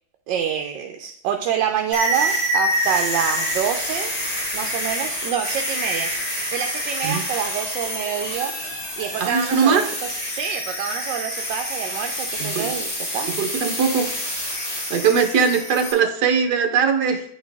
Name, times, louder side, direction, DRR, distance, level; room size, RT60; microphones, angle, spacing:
voice 1, 0.3-4.1 4.5-8.5 9.0-13.3, right 8 dB, 85° right, 5 dB, 1.3 m, -27 dB
sound 1, 1.9-15.9, equal, 30° left, 2.6 m, -27 dB
voice 2, 9.2-9.9 12.4-12.7 13.3-14.1 14.7-17.2, right 6 dB, 70° right, 5 dB, 1.5 m, -20 dB
9.3 x 4.4 x 3.4 m, 0.71 s
omnidirectional pair, 1.9 m